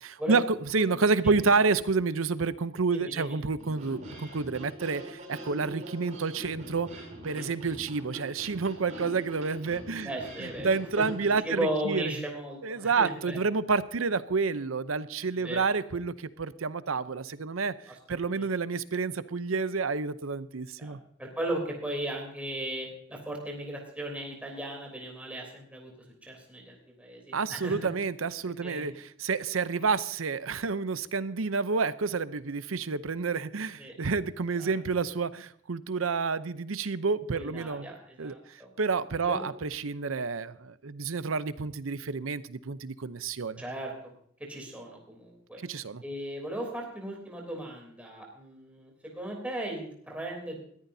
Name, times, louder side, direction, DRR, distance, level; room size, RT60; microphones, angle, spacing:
voice 1, 0.0-6.9 7.2-10.1 10.4-12.1 12.6-17.7 18.1-21.0 27.3-37.9 38.2-43.6 45.6-46.0, right 4 dB, 90° right, 14 dB, 0.7 m, -29 dB
voice 2, 2.9-3.4 7.3-7.5 10.1-13.4 15.4-15.7 18.1-18.5 20.8-25.9 26.2-27.8 28.4-28.9 33.8-33.9 34.6-34.7 37.3-38.7 39.2-39.4 43.6-44.1 44.4-45.6 46.0-50.6, right 1 dB, 5° right, 0 dB, 3.4 m, -37 dB
sound 1, 3.6-11.4, right 1 dB, 40° right, 6.1 m, -44 dB
21.0 x 14.5 x 2.7 m, 0.63 s
head